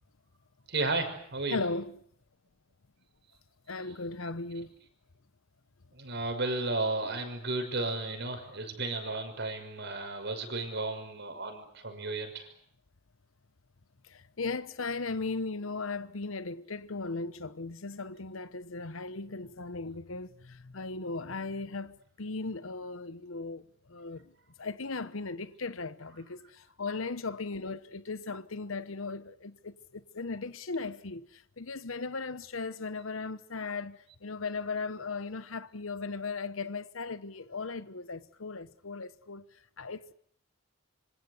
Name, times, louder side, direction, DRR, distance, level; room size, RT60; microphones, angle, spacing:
voice 1, 0.7-1.6 5.9-12.5, right 2 dB, 55° right, 6.0 m, -33 dB
voice 2, 1.5-1.9 3.7-4.7 14.0-24.3 24.6-39.4 39.8-40.1, left 3 dB, 75° left, 1.1 m, -37 dB
27.0 x 25.0 x 8.2 m
head